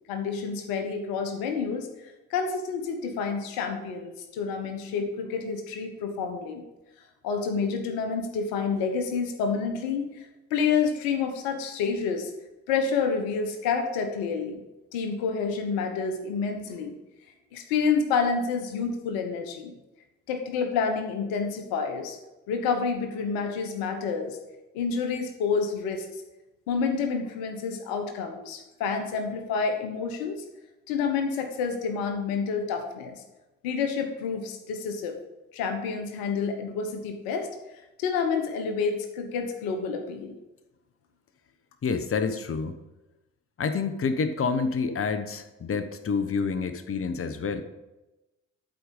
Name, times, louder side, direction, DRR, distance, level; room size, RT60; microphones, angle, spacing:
voice 1, 0.1-1.9 2.3-6.6 7.2-12.3 12.7-14.6 14.9-17.0 17.5-19.7 20.3-22.2 22.5-24.4 24.7-26.2 26.7-30.4 30.9-33.2 33.6-35.2 35.5-37.5 38.0-40.3, left 5 dB, 75° left, 6 dB, 1.0 m, -28 dB
voice 2, 41.8-42.8 43.6-47.6, left 5 dB, 40° left, 10 dB, 0.9 m, -28 dB
11.5 x 4.8 x 5.2 m, 1.0 s
hypercardioid pair, 40°, 35 cm